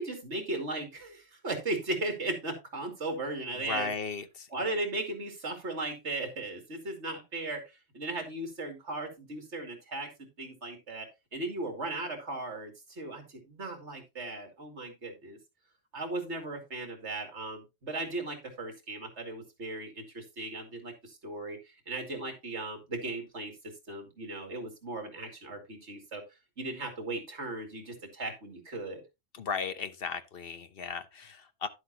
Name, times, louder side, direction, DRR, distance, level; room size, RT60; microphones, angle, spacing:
voice 1, 0.0-3.9 4.5-10.1 10.4-15.4 15.9-23.5 23.9-26.2 26.6-29.0, right 2 dB, 65° right, 2.7 m, -37 dB
voice 2, 3.6-4.5 29.3-31.7, left 5 dB, 55° left, 1.0 m, -36 dB
11.5 x 7.8 x 2.9 m
omnidirectional pair, 1.3 m